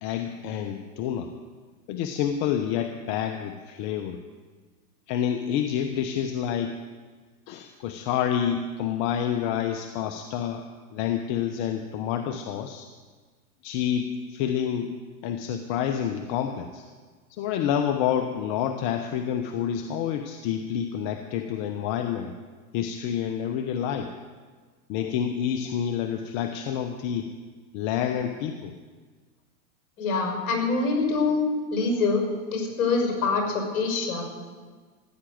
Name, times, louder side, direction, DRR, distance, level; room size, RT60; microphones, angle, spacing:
voice 1, 0.0-1.3 1.9-4.2 5.1-6.8 7.5-10.6 10.9-12.9 13.6-14.9 15.2-16.8 17.3-22.3 22.7-24.1 24.9-27.3 27.7-28.7, left 9 dB, 45° left, 7 dB, 1.1 m, -28 dB
voice 2, 30.0-31.4 31.7-32.2 32.5-34.3, left 4 dB, 65° left, 2 dB, 6.0 m, -25 dB
15.5 x 10.0 x 7.9 m, 1.4 s
hypercardioid pair, 120°, 45 cm